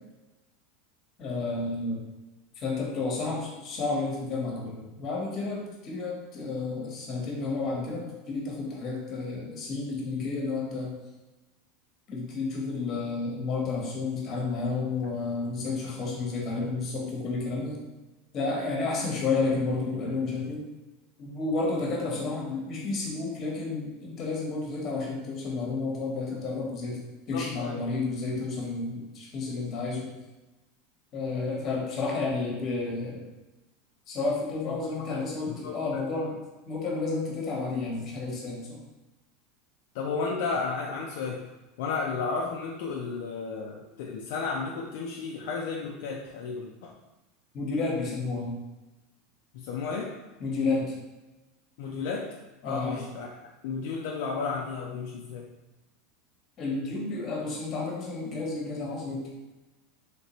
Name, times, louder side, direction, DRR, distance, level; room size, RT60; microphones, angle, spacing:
voice 1, 1.2-2.0 2.6-10.9 12.1-17.8 18.3-20.6 21.2-30.1 31.1-33.2 34.1-36.4 36.7-38.8 47.5-48.5 50.4-50.9 52.6-53.0 56.6-59.3, left 3 dB, 40° left, -2 dB, 1.0 m, -31 dB
voice 2, 27.3-27.9 34.7-34.8 35.1-35.2 35.5-36.0 39.9-41.4 41.8-46.9 49.5-50.1 51.8-52.3 52.6-53.3 53.6-55.5, left 4 dB, 70° left, 0 dB, 0.3 m, -33 dB
3.2 x 2.7 x 3.0 m, 1.1 s
supercardioid pair, 120°, 0 cm